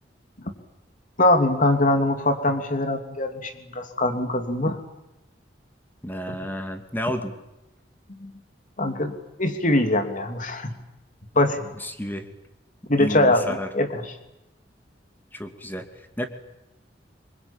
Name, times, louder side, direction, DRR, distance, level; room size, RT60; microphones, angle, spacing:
voice 1, 1.2-4.8 6.3-6.4 8.2-8.3 8.8-9.1 9.4-10.7 11.3-11.7 12.9-14.0, left 1 dB, 45° left, 6 dB, 3.2 m, -22 dB
voice 2, 6.0-7.3 11.8-12.3 13.0-13.7 15.3-16.3, equal, 10° left, 6 dB, 2.6 m, -31 dB
26.0 x 24.0 x 9.1 m, 0.94 s
head